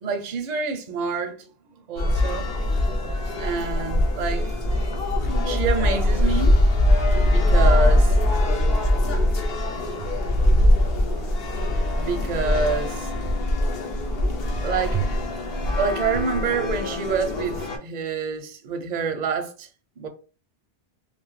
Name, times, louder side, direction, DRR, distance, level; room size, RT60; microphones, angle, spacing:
voice 1, 0.0-1.5 1.9-2.6 3.0-4.5 5.2-6.5 7.2-8.2 11.9-13.1 14.6-15.0 15.8-19.7 20.0-20.1, right 5 dB, 50° right, 0.6 m, -27 dB
sound 1, 2.0-17.8, left 1 dB, 70° left, 0.9 m, -22 dB
2.6 x 2.3 x 3.0 m
omnidirectional pair, 1.0 m